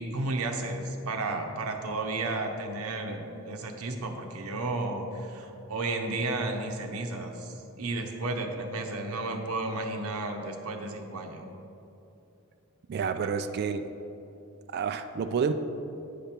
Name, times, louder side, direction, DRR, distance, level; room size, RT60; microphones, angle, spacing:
voice 1, 0.0-11.5, right 2 dB, 75° right, 3 dB, 0.8 m, -33 dB
voice 2, 12.9-13.9 14.7-15.5, right 6 dB, 50° right, 9 dB, 0.3 m, -29 dB
9.3 x 5.1 x 4.4 m, 2.8 s
head